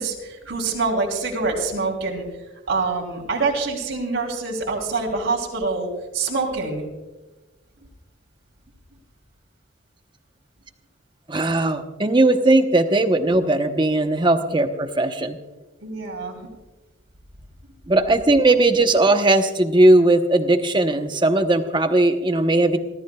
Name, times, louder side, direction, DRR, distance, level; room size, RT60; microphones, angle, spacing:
voice 1, 0.0-2.3 2.7-6.8 15.8-16.5, right 3 dB, 70° right, -1 dB, 3.1 m, -25 dB
voice 2, 11.3-15.4 17.9-22.8, right 2 dB, 25° right, 7 dB, 0.9 m, -18 dB
28.5 x 14.0 x 2.3 m, 1.1 s
head